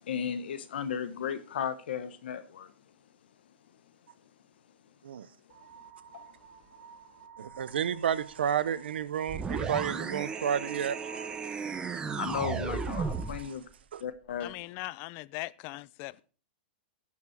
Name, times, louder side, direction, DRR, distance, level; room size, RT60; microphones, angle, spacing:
voice 1, 0.0-2.9 6.1-6.3 12.2-13.7 14.0-14.5, left 8 dB, 75° left, 0.9 m, -35 dB
sound 1, 5.5-13.5, right 6 dB, 60° right, 2.8 m, -51 dB
voice 2, 7.4-11.0 13.9-14.0, right 8 dB, 85° right, 0.8 m, -31 dB
sound 2, 9.3-13.5, right 5 dB, 15° right, 0.8 m, -34 dB
voice 3, 14.4-16.2, left 20 dB, 40° left, 0.4 m, -40 dB
16.0 x 5.8 x 4.4 m
hypercardioid pair, 140°, 6 cm